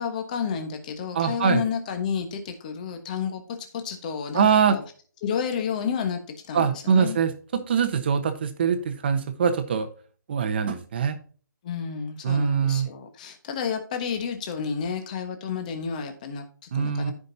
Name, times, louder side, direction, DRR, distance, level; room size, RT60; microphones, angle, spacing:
voice 1, 0.0-4.8 5.2-6.2 6.5-7.2 11.6-17.1, left 6 dB, 25° left, 6 dB, 1.2 m, -31 dB
voice 2, 1.1-1.6 4.3-4.8 6.5-9.9 10.3-11.2 12.2-12.9 16.7-17.1, right 6 dB, 30° right, 9 dB, 1.0 m, -23 dB
14.0 x 5.2 x 2.8 m, 0.41 s
hypercardioid pair, 170°, 11 cm